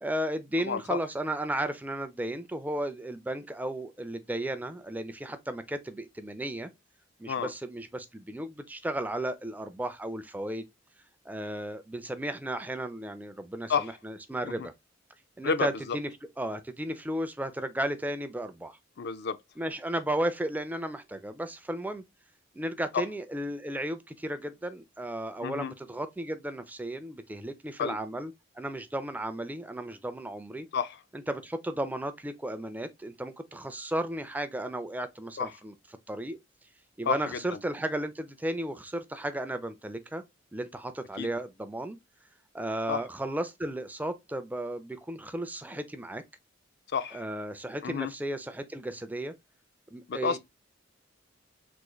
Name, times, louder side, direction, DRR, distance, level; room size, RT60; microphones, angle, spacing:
voice 1, 0.0-6.7 7.2-10.7 11.3-14.7 15.4-16.1 16.4-18.8 19.6-22.0 22.5-30.7 31.3-35.7 36.1-36.4 37.0-40.2 40.5-42.0 42.5-46.2 47.1-49.3 49.9-50.4, right 1 dB, 10° right, 0.4 m, -34 dB
voice 2, 0.6-1.0 7.3-7.5 13.7-13.9 14.4-14.7 15.4-16.0 19.0-19.4 22.9-23.0 25.4-25.7 27.8-28.0 30.7-31.0 35.4-35.5 37.1-37.6 41.2-41.3 42.9-43.0 46.9-47.2 47.8-48.1 50.1-50.4, left 6 dB, 60° left, 0.4 m, -30 dB
3.5 x 3.1 x 2.2 m
head